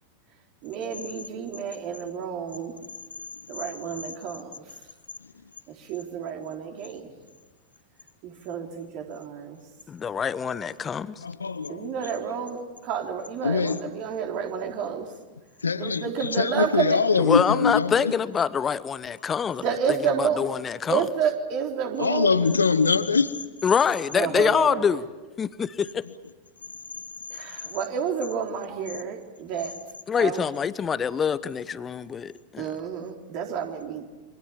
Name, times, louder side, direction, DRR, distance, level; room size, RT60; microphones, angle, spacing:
voice 1, 0.6-2.8 3.5-4.8 5.7-7.1 8.2-9.6 11.7-15.1 15.8-17.0 19.6-20.5 20.9-22.3 24.1-24.9 27.3-29.8 30.2-30.5 32.6-34.0, right 7 dB, 40° right, 3.6 m, -30 dB
voice 2, 9.9-11.2 17.2-19.6 20.2-21.0 23.6-25.0 25.4-26.0 30.1-32.6, left 7 dB, 20° left, 1.0 m, -25 dB
voice 3, 11.2-11.9 13.4-13.8 15.6-16.0 16.4-18.1 22.0-23.3, left 5 dB, 75° left, 1.2 m, -23 dB
28.5 x 25.0 x 7.2 m
figure-of-eight pair, 90°, 0 cm